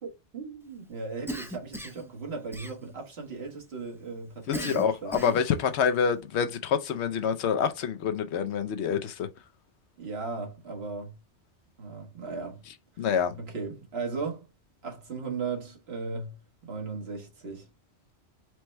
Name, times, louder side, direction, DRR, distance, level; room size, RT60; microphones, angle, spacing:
voice 1, 0.0-5.4 10.0-11.1 11.8-12.6 12.9-13.1 13.4-14.5 14.8-17.7, right 4 dB, 65° right, 1.4 m, -37 dB
Cough, 1.3-2.1 2.5-3.1 4.5-5.5, equal, 5° right, 0.4 m, -38 dB
voice 2, 4.5-9.3 13.0-13.4, left 7 dB, 75° left, 0.9 m, -27 dB
4.6 x 2.1 x 4.3 m
omnidirectional pair, 1.2 m